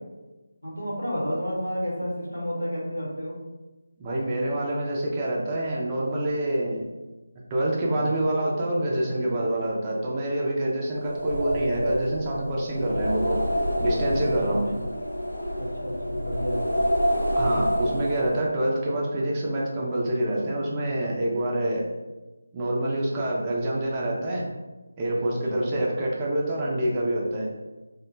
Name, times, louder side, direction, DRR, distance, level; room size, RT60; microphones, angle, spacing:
voice 1, 0.6-3.3 7.9-8.2 14.2-14.8 15.6-16.8 23.2-23.3 25.2-25.7, equal, 85° left, -5 dB, 1.1 m, -32 dB
voice 2, 4.0-6.9 7.5-13.4 13.8-14.7 17.4-21.8 22.5-24.4 25.0-27.5, right 1 dB, 20° right, -4 dB, 0.4 m, -26 dB
sound 1, 10.9-18.5, equal, 65° left, 0.4 m, -28 dB
2.2 x 2.0 x 3.1 m, 1.1 s
figure-of-eight pair, 160°, 0 cm